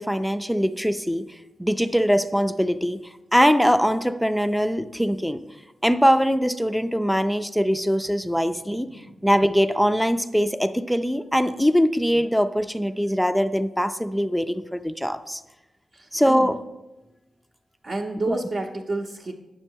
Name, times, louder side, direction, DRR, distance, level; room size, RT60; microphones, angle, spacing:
voice 1, 0.0-3.0 3.3-5.4 5.8-15.4 16.1-16.6 18.2-18.4, equal, ahead, 9 dB, 0.4 m, -22 dB
voice 2, 8.8-9.2 15.9-16.5 17.8-19.3, right 2 dB, 50° right, -2 dB, 0.7 m, -30 dB
9.5 x 6.4 x 4.5 m, 1.0 s
wide cardioid pair, 100°, 0 cm